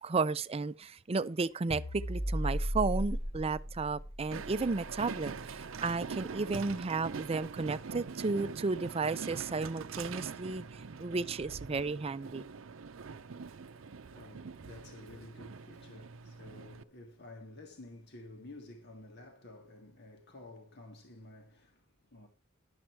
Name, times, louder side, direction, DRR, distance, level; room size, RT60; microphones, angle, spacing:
voice 1, 0.0-12.5, right 4 dB, 30° right, 0.5 m, -33 dB
sound 1, 1.7-6.2, equal, 10° left, 0.6 m, -37 dB
Train, 4.3-16.8, right 5 dB, 80° right, 0.6 m, -44 dB
voice 2, 13.2-22.3, left 2 dB, 60° left, 1.7 m, -52 dB
11.5 x 7.7 x 4.5 m
head